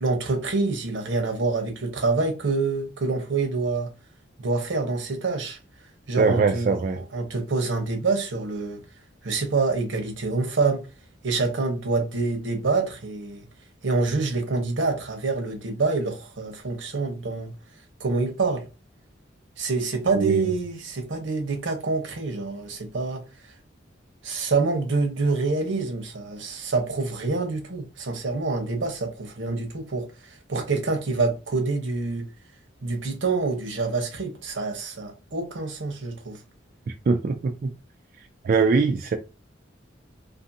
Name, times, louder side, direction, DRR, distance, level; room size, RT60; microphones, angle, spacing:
voice 1, 0.0-3.9 4.4-5.6 6.1-8.8 9.2-10.9 11.2-13.5 13.8-17.5 18.0-18.7 19.6-23.5 24.2-32.3 32.8-36.4, right 3 dB, 85° right, 0.8 m, -26 dB
voice 2, 6.2-7.0 20.2-20.3 37.1-37.7 38.4-39.2, right 4 dB, 50° right, 0.3 m, -22 dB
2.5 x 2.5 x 2.6 m
head